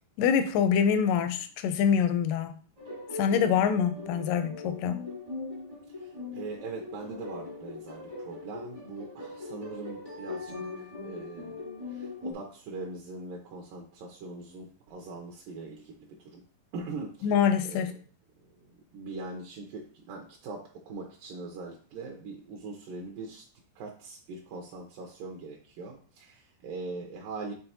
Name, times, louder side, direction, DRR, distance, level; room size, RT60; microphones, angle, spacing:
voice 1, 0.2-2.5 3.1-5.0 17.2-17.9, left 7 dB, 80° left, 9 dB, 2.0 m, -25 dB
sound 1, 2.8-12.3, left 3 dB, 35° right, 0.5 m, -40 dB
voice 2, 6.3-10.5 10.8-11.6 11.9-15.9 16.2-16.4 16.7-17.3 17.7-17.9 18.9-23.4 23.8-27.5, right 3 dB, 80° right, 0 dB, 2.5 m, -41 dB
7.7 x 4.2 x 2.9 m, 0.41 s
omnidirectional pair, 4.2 m